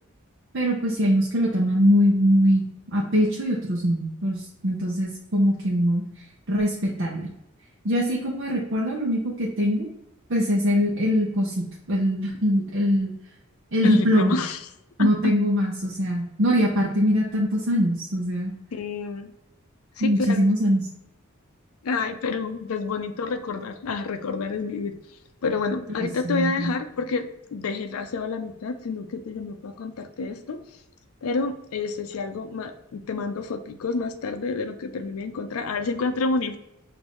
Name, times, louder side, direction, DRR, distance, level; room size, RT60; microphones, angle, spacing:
voice 1, 0.5-2.6 2.9-6.0 6.5-7.3 7.8-9.9 10.3-13.1 13.7-14.4 15.0-18.5 20.0-20.9 26.2-26.7, equal, 60° right, -2 dB, 0.7 m, -22 dB
voice 2, 13.8-14.7 15.0-15.1 18.7-19.3 20.0-20.4 21.8-24.9 25.4-30.6 31.2-36.6, left 4 dB, 90° left, 7 dB, 0.4 m, -29 dB
6.1 x 2.6 x 3.0 m, 0.86 s
head